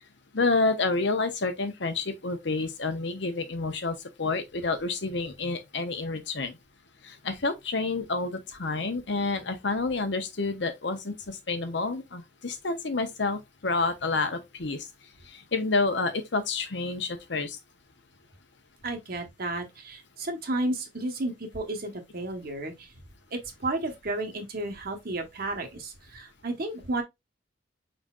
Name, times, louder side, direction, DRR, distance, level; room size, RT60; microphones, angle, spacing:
voice 1, 0.3-6.5 7.0-14.8 15.5-17.6, left 3 dB, 70° left, 1.0 m, -29 dB
voice 2, 18.8-22.9 23.3-27.0, right 2 dB, 55° right, 1.2 m, -32 dB
5.3 x 4.0 x 2.4 m
head